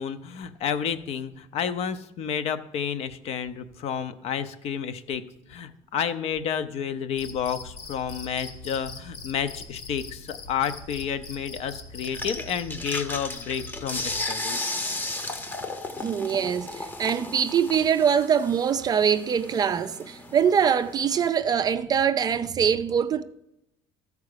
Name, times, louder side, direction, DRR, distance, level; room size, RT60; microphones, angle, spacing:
voice 1, 0.0-5.2 5.5-14.6, left 8 dB, 50° left, 0.7 m, -30 dB
Cricket, 7.1-14.3, left 3 dB, 70° left, 1.8 m, -42 dB
sound 1, 12.0-21.3, left 2 dB, 15° left, 0.8 m, -35 dB
voice 2, 16.0-23.2, right 7 dB, 30° right, 0.4 m, -23 dB
13.5 x 4.8 x 6.6 m
cardioid pair, 155°, 13 cm